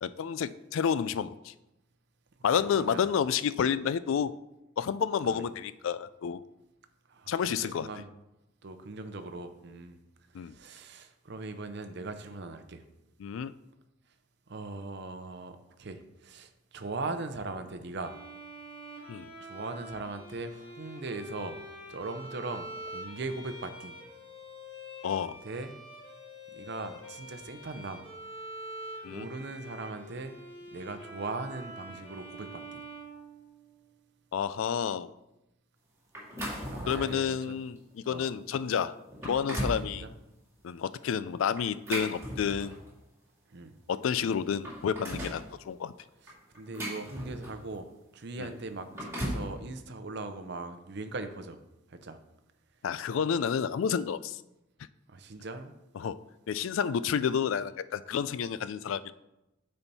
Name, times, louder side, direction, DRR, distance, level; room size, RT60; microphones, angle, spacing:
voice 1, 0.0-1.5 2.4-4.3 4.8-6.4 7.3-7.9 10.3-10.5 13.2-13.5 19.1-19.3 25.0-25.4 29.0-29.3 34.3-35.1 36.9-39.0 39.2-40.0 40.6-42.8 43.9-45.9 48.4-48.5 52.8-54.4 56.0-56.2 56.5-59.1, left 7 dB, 75° left, 16 dB, 0.3 m, -30 dB
voice 2, 2.6-3.1 5.2-5.4 7.1-7.3 7.6-8.1 8.6-10.0 10.4-12.8 14.5-18.1 19.4-21.6 21.9-24.0 25.4-25.7 26.5-28.1 29.1-30.4 30.7-32.8 36.7-37.6 38.1-38.3 39.6-40.1 43.5-43.8 46.2-47.9 48.1-51.6 51.9-52.2 55.1-55.7, right 3 dB, 55° right, 9 dB, 0.6 m, -40 dB
Bowed string instrument, 18.0-33.9, right 1 dB, 25° left, 1.4 m, -46 dB
sound 1, 36.1-37.2 37.8-37.9 38.5-38.6 39.1-39.9 41.6-42.9 43.9-44.0 44.4-45.4 46.3-47.7 48.7-49.5, equal, 15° right, 2.1 m, -37 dB
8.7 x 4.5 x 4.1 m, 0.93 s
head